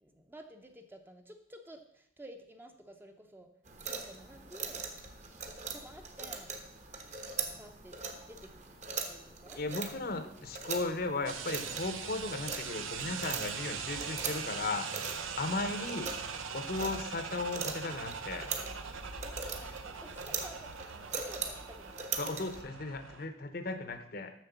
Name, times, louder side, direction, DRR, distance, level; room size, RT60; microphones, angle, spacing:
voice 1, 0.0-3.5 3.8-4.9 5.4-6.5 7.5-8.5 8.9-9.6 19.0-22.4 23.1-23.3, right 1 dB, 10° right, 5 dB, 0.7 m, -53 dB
sound 1, 3.7-22.6, right 5 dB, 35° right, 1.1 m, -42 dB
voice 2, 9.6-16.1 16.5-18.5 22.2-24.3, left 3 dB, 50° left, 9 dB, 0.8 m, -36 dB
sound 2, 11.3-23.3, right 6 dB, 90° right, 0.8 m, -41 dB
7.5 x 6.7 x 6.8 m, 0.74 s
head